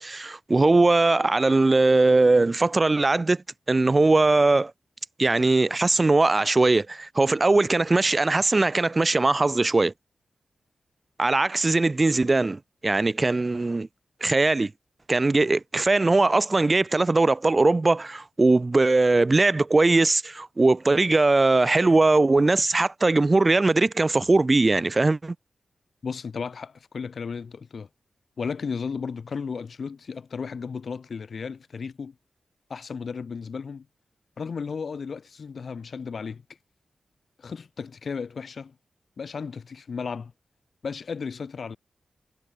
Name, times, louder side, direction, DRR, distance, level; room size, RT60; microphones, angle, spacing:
voice 1, 0.0-4.7 5.2-9.9 11.2-13.9 14.2-14.7 15.1-25.3, right 3 dB, 35° right, 3.0 m, -20 dB
voice 2, 26.0-27.9 28.4-32.1 32.7-33.9 34.4-36.4 37.4-38.7 39.2-40.3 40.8-41.8, left 5 dB, 65° left, 4.1 m, -34 dB
cardioid pair, 65°, 0 cm